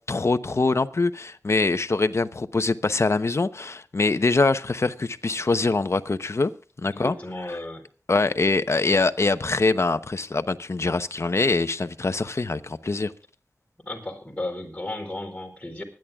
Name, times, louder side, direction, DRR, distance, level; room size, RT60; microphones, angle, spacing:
voice 1, 0.1-6.5 6.8-7.1 8.1-13.1, left 3 dB, 55° left, 0.9 m, -23 dB
voice 2, 6.9-7.8 13.9-15.8, left 1 dB, 25° left, 4.2 m, -34 dB
24.5 x 10.5 x 2.4 m
cardioid pair, 45°, 6 cm